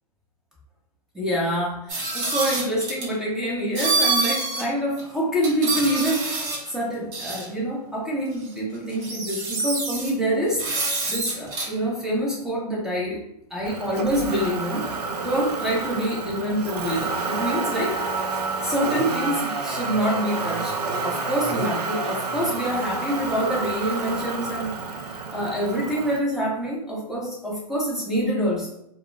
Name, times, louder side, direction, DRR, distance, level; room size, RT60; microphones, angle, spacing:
voice 1, 1.1-10.6 11.1-13.2 13.5-14.8 15.2-18.0 18.3-20.7 21.0-24.7 25.1-28.7, equal, ahead, -4 dB, 0.8 m, -26 dB
sound 1, 1.9-3.1 3.8-4.6 5.0-5.1 5.4-6.7 7.1-7.5 8.5-8.6 8.9-10.1 10.6-11.7, right 3 dB, 50° right, 1.1 m, -26 dB
Motor vehicle (road), 13.6-26.2, right 3 dB, 85° right, 0.5 m, -29 dB
2.2 x 2.0 x 3.3 m, 0.77 s
hypercardioid pair, 120°, 20 cm